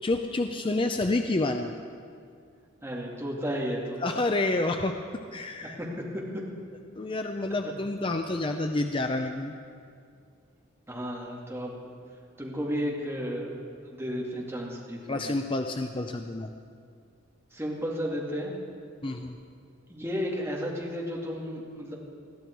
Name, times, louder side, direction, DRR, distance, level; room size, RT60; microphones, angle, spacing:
voice 1, 0.0-1.8 4.0-5.8 6.9-9.5 15.1-16.5 19.0-19.4, left 2 dB, 25° left, 5 dB, 0.6 m, -29 dB
voice 2, 2.8-4.0 5.8-6.4 10.9-11.9 12.4-13.5 13.8-15.2 17.5-18.6 19.9-21.9, equal, 10° right, -3 dB, 2.5 m, -33 dB
21.5 x 14.0 x 4.7 m, 2.3 s
head